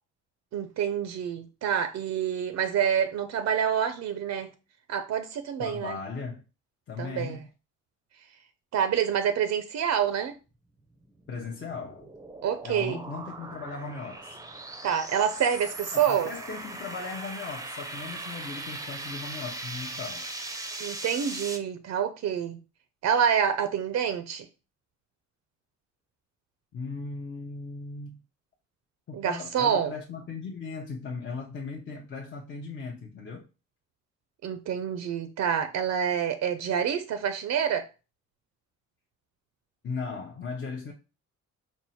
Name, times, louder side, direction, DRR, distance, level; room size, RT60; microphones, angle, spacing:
voice 1, 0.5-4.5 4.9-6.0 7.0-7.4 8.7-10.4 12.4-13.0 14.8-16.3 20.8-22.6 23.0-24.5 29.1-29.9 34.4-37.9, right 8 dB, 60° right, 0.5 m, -27 dB
voice 2, 5.6-6.4 6.9-7.5 11.3-12.1 12.6-14.4 15.9-20.3 26.7-28.2 29.1-33.5 39.8-40.9, left 4 dB, 40° left, 0.7 m, -37 dB
sound 1, 11.0-21.6, right 2 dB, 10° right, 0.6 m, -39 dB
4.3 x 2.0 x 4.2 m
cardioid pair, 90°, 30 cm